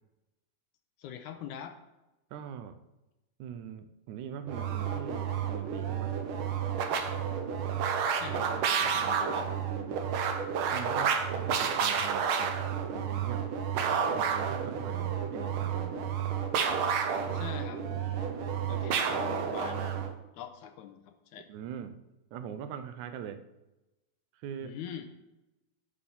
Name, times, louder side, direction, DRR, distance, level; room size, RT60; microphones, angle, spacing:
voice 1, 1.0-1.8 8.1-9.5 17.3-18.4 18.7-20.0 20.3-21.5 24.6-25.1, left 9 dB, 90° left, 6 dB, 2.2 m, -43 dB
voice 2, 2.3-2.8 3.4-6.1 8.3-8.4 9.6-10.0 10.7-12.6 12.9-13.4 14.2-16.2 21.5-22.0 22.3-23.4 24.3-24.8, right 8 dB, 90° right, 10 dB, 2.1 m, -42 dB
sound 1, 4.4-20.1, right 7 dB, 70° right, 1.2 m, -30 dB
9.9 x 4.3 x 7.0 m, 0.99 s
omnidirectional pair, 3.4 m